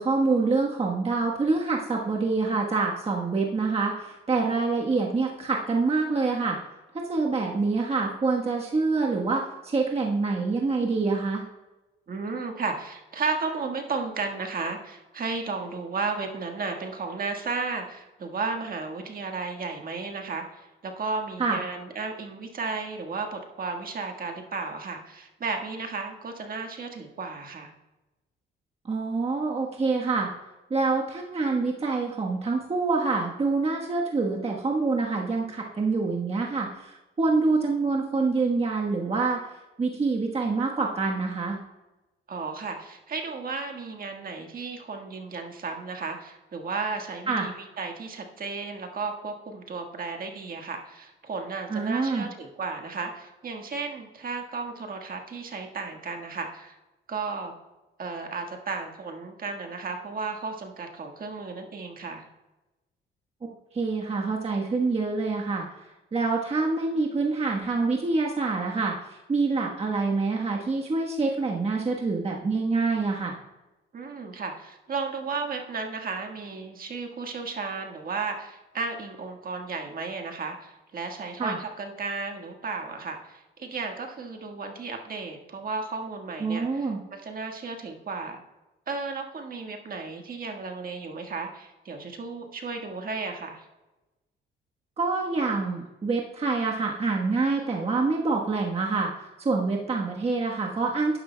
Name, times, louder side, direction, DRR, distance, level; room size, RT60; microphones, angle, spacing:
voice 1, 0.0-6.6 6.9-11.4 21.4-21.6 28.8-30.3 30.7-39.4 39.8-41.6 47.3-47.4 51.7-52.2 63.7-65.6 66.1-73.4 81.4-81.6 86.4-87.0 95.0-99.1 99.4-101.2, right 3 dB, 30° right, -1 dB, 1.2 m, -26 dB
voice 2, 12.1-27.7 42.3-56.8 57.1-57.5 58.0-62.3 73.9-88.4 88.9-93.6, right 4 dB, 45° right, 4 dB, 1.5 m, -34 dB
11.0 x 10.0 x 2.2 m, 1.0 s
cardioid pair, 90°, 20 cm